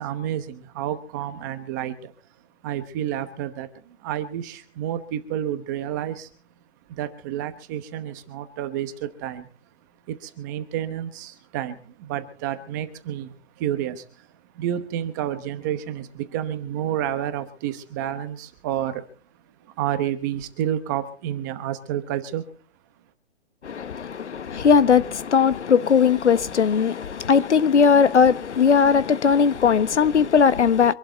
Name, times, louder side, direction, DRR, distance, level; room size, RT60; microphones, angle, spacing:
voice 1, 0.0-2.1 2.6-6.3 6.9-9.5 10.1-14.3 14.5-19.0 19.6-22.5, right 11 dB, 15° right, 1.0 m, -30 dB
voice 2, 23.6-30.9, left 6 dB, 85° left, 1.3 m, -18 dB
25.5 x 12.0 x 4.0 m
hypercardioid pair, 165°, 34 cm